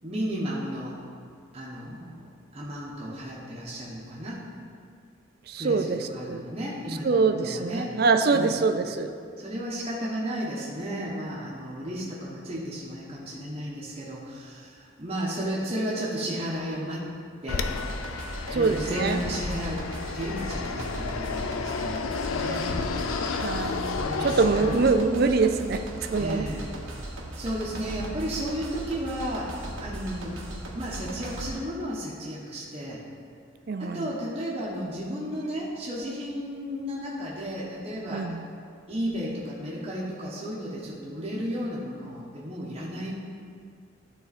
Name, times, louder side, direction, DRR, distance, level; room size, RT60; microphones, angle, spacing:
voice 1, 0.0-1.0 1.5-2.3 2.5-4.4 5.6-7.9 8.3-8.6 9.4-17.0 17.4-17.7 18.5-19.8 20.1-22.7 23.8-24.8 26.2-26.7 27.1-30.4 30.7-33.0 33.8-38.3 38.9-43.1, equal, 30° right, -6 dB, 1.0 m, -33 dB
voice 2, 5.5-6.4 7.0-9.1 18.5-19.2 23.3-25.8 26.1-26.5 33.7-34.1 38.1-38.4, right 4 dB, 50° right, 7 dB, 0.4 m, -24 dB
Fixed-wing aircraft airplane, 17.5-25.3, left 4 dB, 90° left, 0.4 m, -32 dB
sound 1, 17.6-31.5, right 1 dB, 80° right, 1.3 m, -38 dB
12.0 x 4.1 x 4.1 m, 2.3 s
head